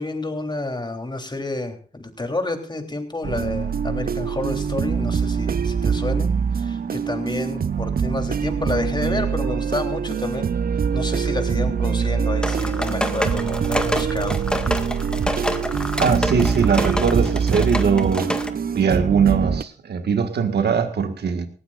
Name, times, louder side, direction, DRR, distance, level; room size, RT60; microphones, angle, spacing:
voice 1, 0.0-10.5 10.9-14.4, left 2 dB, 25° left, 4 dB, 3.4 m, -29 dB
sound 1, 3.2-19.6, right 6 dB, 60° right, 0.7 m, -24 dB
sound 2, 12.4-18.5, equal, 5° left, 1.8 m, -27 dB
voice 2, 16.0-18.3 18.7-21.5, right 6 dB, 80° right, 7 dB, 1.7 m, -21 dB
19.0 x 15.0 x 2.5 m, 0.40 s
cardioid pair, 45°, 17 cm